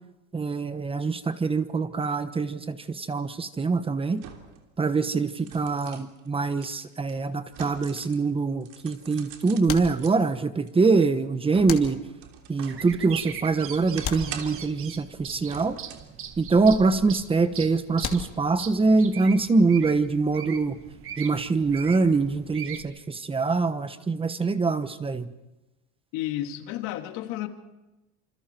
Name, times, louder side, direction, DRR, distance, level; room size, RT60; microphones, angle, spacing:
voice 1, 0.3-4.2 4.8-12.0 12.5-15.8 16.4-20.7 21.2-25.3, right 4 dB, 15° right, 11 dB, 1.2 m, -24 dB
sound 1, 4.2-4.7 5.1-8.3 8.6-10.1 10.7-12.9 13.3-14.8 15.5-16.2 16.6-16.7, right 8 dB, 70° right, 3.2 m, -44 dB
sound 2, 7.8-8.4 9.7-10.6 11.7-12.5 14.0-15.1 18.0-18.8, left 7 dB, 40° left, 2.7 m, -37 dB
sound 3, 12.7-22.8, right 8 dB, 40° right, 1.8 m, -40 dB
voice 2, 26.1-27.5, left 13 dB, 80° left, 6 dB, 2.5 m, -31 dB
27.5 x 26.5 x 4.6 m, 1.0 s
cardioid pair, 140°, 32 cm